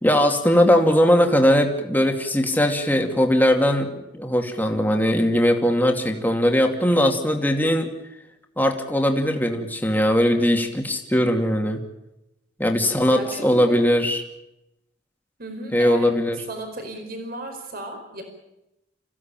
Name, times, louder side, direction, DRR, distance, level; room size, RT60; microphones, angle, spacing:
voice 1, 0.0-7.9 8.6-11.8 12.6-14.2 15.7-16.4, equal, 10° left, 3 dB, 2.5 m, -20 dB
voice 2, 13.1-13.8 15.4-16.1 16.5-18.2, right 1 dB, 50° right, 5 dB, 4.9 m, -34 dB
27.0 x 16.0 x 9.0 m, 0.90 s
head